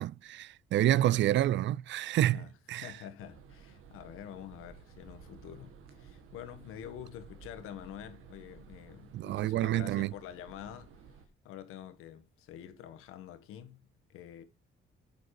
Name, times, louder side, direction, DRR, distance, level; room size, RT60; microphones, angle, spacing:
voice 1, 0.0-2.4 2.7-2.9 9.1-10.1, right 13 dB, 60° right, 0.4 m, -28 dB
voice 2, 0.9-1.2 2.3-11.0 11.4-14.4, left 10 dB, 90° left, 1.5 m, -47 dB
sound 1, 3.2-11.3, right 6 dB, 85° right, 1.8 m, -54 dB
9.2 x 6.7 x 4.9 m
cardioid pair, 105°, 21 cm